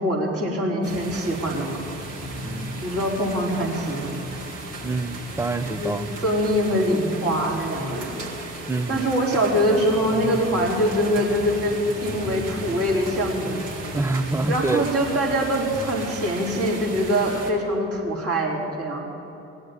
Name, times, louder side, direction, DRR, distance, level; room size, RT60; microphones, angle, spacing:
voice 1, 0.0-1.8 2.8-4.2 5.6-6.0 6.2-8.1 8.9-11.7 12.0-13.7 14.5-19.0, equal, 40° right, -4 dB, 4.3 m, -23 dB
sound 1, 0.8-17.5, right 3 dB, 60° right, 2.3 m, -37 dB
sound 2, 1.4-16.1, left 3 dB, 40° left, 1.1 m, -39 dB
voice 2, 2.4-2.9 4.8-6.1 6.7-6.9 8.7-9.1 13.9-14.9, right 3 dB, 10° right, 10 dB, 0.6 m, -26 dB
19.0 x 7.8 x 9.3 m, 2.9 s
figure-of-eight pair, 50°, 35 cm